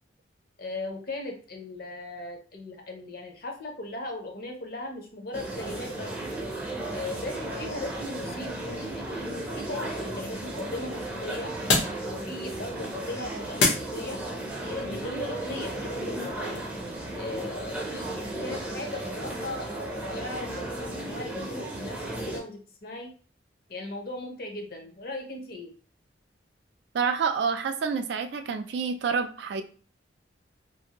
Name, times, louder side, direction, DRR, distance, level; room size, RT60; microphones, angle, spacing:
voice 1, 0.6-6.1 6.9-11.5 12.0-14.2 14.6-16.6 17.2-23.1 23.7-25.7, left 2 dB, 50° left, 3 dB, 0.7 m, -38 dB
sound 1, 5.3-22.4, right 1 dB, 10° right, 0.5 m, -35 dB
sound 2, 8.4-14.5, left 3 dB, 85° left, 0.9 m, -32 dB
voice 2, 26.9-29.6, right 5 dB, 65° right, 9 dB, 0.3 m, -28 dB
2.6 x 2.5 x 2.8 m, 0.41 s
head